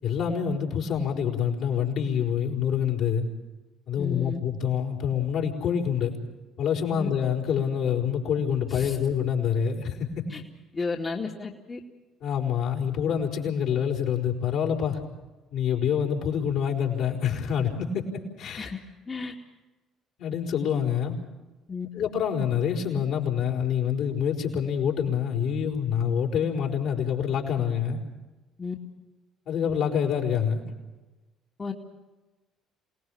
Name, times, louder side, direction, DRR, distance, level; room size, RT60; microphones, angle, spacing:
voice 1, 0.0-3.3 3.9-6.1 6.6-10.2 12.2-15.0 15.5-18.7 20.2-21.2 21.9-28.0 29.5-30.6, left 8 dB, 65° left, 0 dB, 4.9 m, -26 dB
voice 2, 4.0-4.4 7.0-7.1 8.7-9.0 10.3-10.4 10.7-11.8 18.6-18.8 19.1-19.3 21.7-21.9 28.6-28.8 31.6-31.7, left 4 dB, 30° left, 0 dB, 2.4 m, -33 dB
27.0 x 19.0 x 7.2 m, 1.2 s
hypercardioid pair, 60°, 0 cm